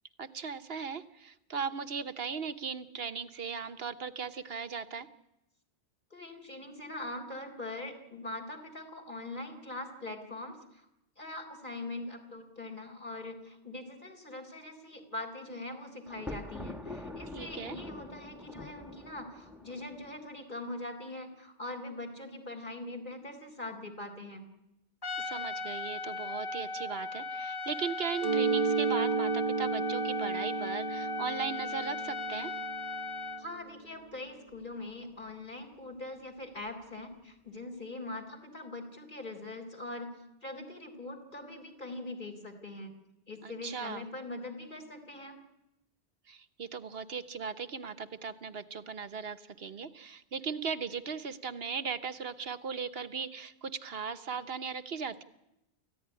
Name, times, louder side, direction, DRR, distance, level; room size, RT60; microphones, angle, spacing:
voice 1, 0.2-5.1 17.3-17.8 25.2-32.5 43.4-44.0 46.3-55.2, right 6 dB, 60° right, 12 dB, 1.3 m, -38 dB
voice 2, 6.1-10.9 11.2-24.4 33.4-40.2 40.4-42.9 43.3-45.4, left 2 dB, 45° left, 2 dB, 3.8 m, -42 dB
Thunder, 16.1-20.2, left 2 dB, ahead, 1.4 m, -44 dB
Trumpet, 25.0-33.4, left 3 dB, 20° left, 1.2 m, -37 dB
Mallet percussion, 28.2-33.8, right 5 dB, 35° right, 1.1 m, -33 dB
28.0 x 15.5 x 9.8 m, 0.89 s
omnidirectional pair, 1.1 m